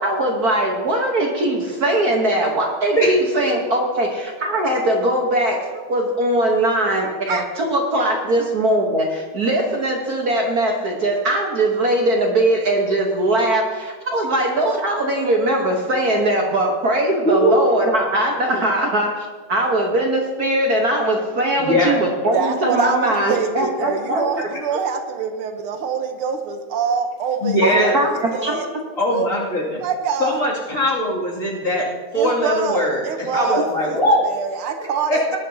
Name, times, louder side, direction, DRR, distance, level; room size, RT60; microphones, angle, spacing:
voice 1, 0.0-24.5 27.6-28.5 33.9-34.0, right 1 dB, 50° right, 0 dB, 1.5 m, -20 dB
voice 2, 21.6-22.0 27.4-27.9 29.0-29.8 30.2-34.4 35.1-35.2, equal, 40° left, -5 dB, 2.8 m, -20 dB
voice 3, 22.3-28.7 29.1-30.4 32.2-34.0 34.2-35.4, right 6 dB, 80° right, 6 dB, 1.8 m, -25 dB
18.5 x 10.5 x 2.8 m, 1.4 s
omnidirectional pair, 2.3 m